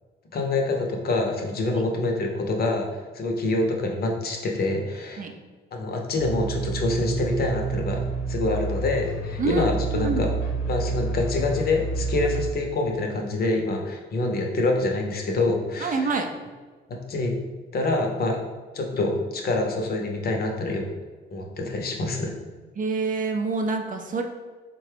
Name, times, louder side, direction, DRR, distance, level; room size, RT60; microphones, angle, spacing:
voice 1, 0.3-5.2 5.7-8.0 8.3-10.3 10.7-16.1 16.9-17.3 17.7-18.4 18.7-20.9 21.3-22.3, left 2 dB, 50° left, 1 dB, 0.7 m, -26 dB
sound 1, 6.1-12.5, right 4 dB, 85° left, 0.6 m, -29 dB
voice 2, 15.8-16.3 22.8-24.2, right 4 dB, 40° right, 4 dB, 0.4 m, -26 dB
3.9 x 2.2 x 3.3 m, 1.4 s
cardioid pair, 90°, 20 cm